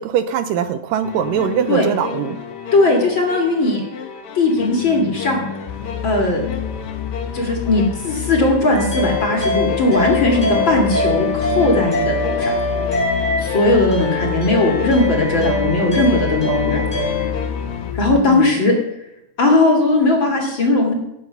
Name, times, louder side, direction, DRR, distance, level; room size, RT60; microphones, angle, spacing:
voice 1, 0.0-2.4 18.1-18.5, right 9 dB, 80° right, 10 dB, 2.2 m, -22 dB
sound 1, 1.0-17.9, left 8 dB, 55° left, 1.7 m, -30 dB
voice 2, 2.7-3.8 4.3-5.5 6.0-6.4 7.3-12.5 13.4-16.8 17.9-18.7 19.4-20.9, left 2 dB, 40° left, 1 dB, 2.3 m, -18 dB
sound 2, 5.7-18.2, left 7 dB, 85° left, 2.5 m, -30 dB
sound 3, 8.7-17.3, left 2 dB, 5° right, 4.7 m, -23 dB
18.0 x 9.0 x 5.6 m, 0.86 s
omnidirectional pair, 4.2 m